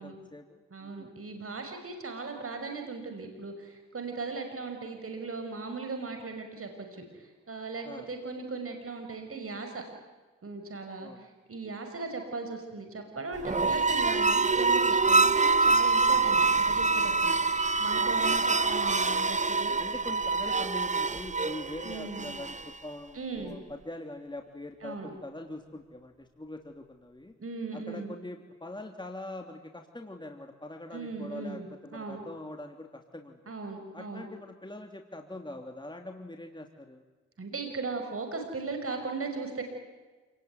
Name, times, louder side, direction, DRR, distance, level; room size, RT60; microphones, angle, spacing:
voice 1, 0.0-1.1 7.8-8.1 11.0-11.2 18.1-18.4 19.8-27.4 27.7-33.5 33.9-37.0, left 1 dB, 15° left, 4 dB, 3.3 m, -43 dB
voice 2, 0.7-9.8 10.4-19.8 21.8-22.4 23.1-23.6 24.8-25.1 27.4-28.1 30.9-31.7 31.9-32.2 33.5-34.3 37.4-39.6, right 3 dB, 50° right, 5 dB, 5.9 m, -38 dB
sound 1, 13.4-22.8, right 4 dB, 25° right, 1.1 m, -25 dB
28.0 x 20.0 x 9.6 m, 1.3 s
cardioid pair, 50°, 29 cm